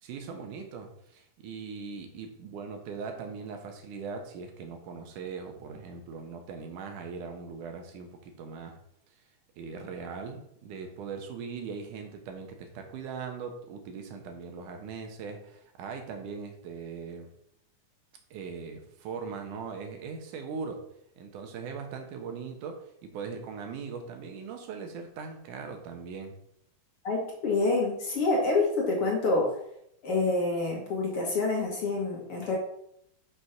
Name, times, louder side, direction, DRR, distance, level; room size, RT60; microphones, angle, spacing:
voice 1, 0.0-8.8 9.6-17.3 18.3-20.8 21.2-26.3, right 5 dB, 75° right, 4 dB, 2.5 m, -40 dB
voice 2, 27.0-29.5 30.0-32.6, left 3 dB, 50° left, -1 dB, 2.1 m, -27 dB
6.4 x 5.3 x 5.7 m, 0.74 s
omnidirectional pair, 3.7 m